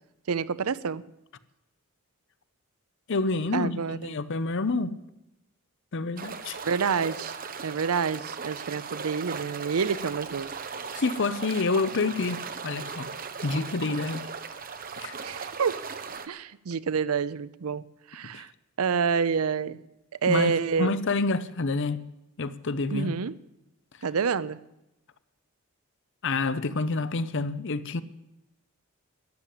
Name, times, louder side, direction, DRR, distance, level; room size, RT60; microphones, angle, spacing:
voice 1, 0.3-1.0 3.5-4.2 6.5-7.3 7.6-10.5 15.2-15.8 16.3-18.5 18.8-19.8 20.2-20.9 22.9-23.3 24.0-24.6, right 6 dB, 75° right, 0.5 m, -28 dB
voice 2, 3.1-4.9 5.9-6.6 10.9-13.1 13.4-14.3 15.0-15.1 18.3-18.4 20.3-22.0 22.4-23.1 26.2-28.0, left 3 dB, 55° left, 0.7 m, -28 dB
sound 1, 6.2-16.3, right 5 dB, 40° right, 0.9 m, -38 dB
13.0 x 9.9 x 8.4 m
head